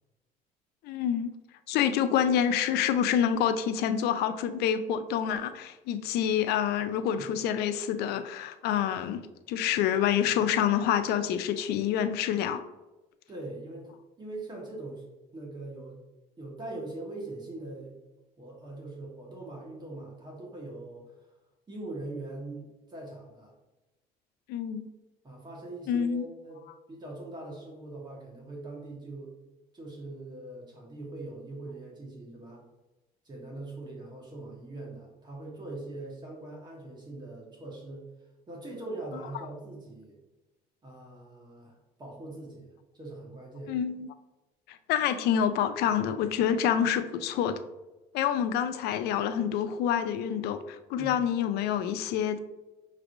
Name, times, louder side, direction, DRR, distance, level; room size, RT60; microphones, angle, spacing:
voice 1, 0.8-1.3 1.7-9.2 9.5-12.6 24.5-24.8 25.9-26.2 43.7-44.1 44.7-47.6 48.1-52.4, left 9 dB, 75° left, 10 dB, 0.4 m, -27 dB
voice 2, 13.3-15.0 15.3-16.0 16.4-18.0 18.4-21.2 21.7-23.5 25.2-29.3 29.7-32.6 33.2-38.1 38.5-40.2 40.8-42.7 42.9-43.7 50.9-51.1, right 2 dB, 25° right, -3 dB, 1.3 m, -42 dB
5.8 x 3.2 x 2.6 m, 1.1 s
cardioid pair, 105°, 17 cm